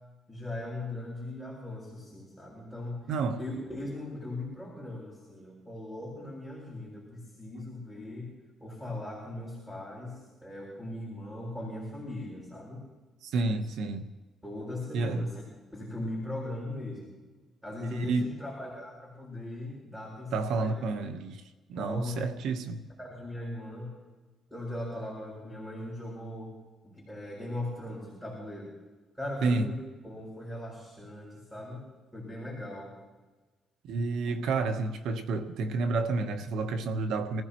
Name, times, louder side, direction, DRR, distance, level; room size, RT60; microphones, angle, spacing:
voice 1, 0.3-3.1 3.4-8.3 8.6-12.8 14.4-15.4 15.7-17.1 17.6-20.7 21.8-22.2 23.0-23.9 24.5-26.5 26.8-28.7 29.2-31.8 32.1-32.9 34.3-34.4, left 1 dB, ahead, 7.2 m, -39 dB
voice 2, 3.1-3.4 13.2-14.1 14.9-15.3 17.8-18.4 20.3-21.4 21.7-22.8 29.4-29.7 33.8-37.4, right 3 dB, 85° right, 1.2 m, -30 dB
27.5 x 15.5 x 3.1 m
cardioid pair, 90°, 0 cm